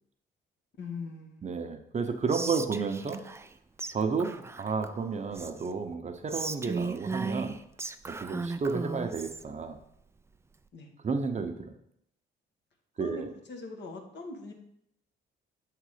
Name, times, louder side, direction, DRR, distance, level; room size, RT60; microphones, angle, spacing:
voice 1, 0.8-1.9 10.7-10.9 13.0-14.5, left 3 dB, 60° left, 2 dB, 1.4 m, -42 dB
voice 2, 1.4-3.2 3.9-7.6 8.1-9.8 11.0-11.8 13.0-13.3, right 5 dB, 35° right, 6 dB, 0.7 m, -32 dB
Whispering, 2.3-3.5 3.8-3.9 4.2-5.7 6.3-9.4, right 4 dB, 15° right, 0.3 m, -36 dB
7.2 x 3.8 x 4.9 m, 0.76 s
cardioid pair, 90°, 20 cm